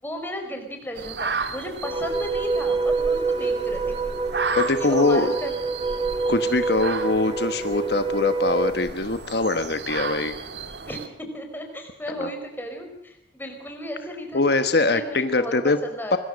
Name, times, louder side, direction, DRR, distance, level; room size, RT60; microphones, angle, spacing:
voice 1, 0.0-4.1 4.7-5.6 10.9-14.6 14.9-16.2, equal, 10° left, 4 dB, 4.7 m, -35 dB
sound 1, 0.9-11.1, right 4 dB, 75° right, 2.2 m, -34 dB
sound 2, 1.8-8.7, right 4 dB, 30° right, 1.4 m, -26 dB
voice 2, 4.5-5.3 6.3-10.4 12.2-12.3 14.3-15.8 16.1-16.2, left 3 dB, 65° left, 9 dB, 1.2 m, -23 dB
25.5 x 21.5 x 6.4 m, 0.67 s
head